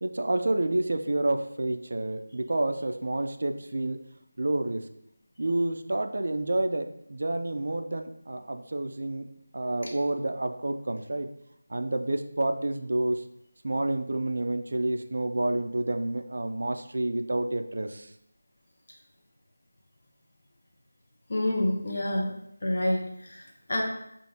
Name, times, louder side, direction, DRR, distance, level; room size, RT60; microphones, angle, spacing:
voice 1, 0.0-4.0 4.4-4.9 5.4-9.3 9.5-11.3 11.7-13.2 13.6-18.1, right 2 dB, 60° right, 7 dB, 0.3 m, -29 dB
voice 2, 21.3-22.3 22.6-23.8, left 1 dB, 50° left, -1 dB, 0.9 m, -28 dB
4.8 x 2.5 x 2.7 m, 0.77 s
figure-of-eight pair, 175°, 0 cm